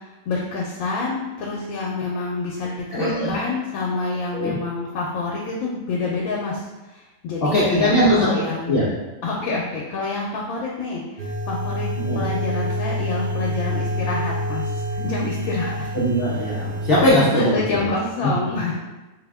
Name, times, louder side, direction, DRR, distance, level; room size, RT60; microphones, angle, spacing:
voice 1, 0.0-8.8 9.2-11.9 12.1-15.9 17.5-18.8, left 3 dB, 85° left, -2 dB, 1.0 m, -28 dB
voice 2, 2.9-3.3 4.3-4.6 7.4-8.3 8.7-8.9 12.0-12.3 15.9-17.6 18.2-18.3, equal, 55° left, -7 dB, 0.7 m, -19 dB
sound 1, 11.2-17.1, equal, 70° right, 0.5 m, -27 dB
3.9 x 2.1 x 3.4 m, 1.1 s
omnidirectional pair, 1.5 m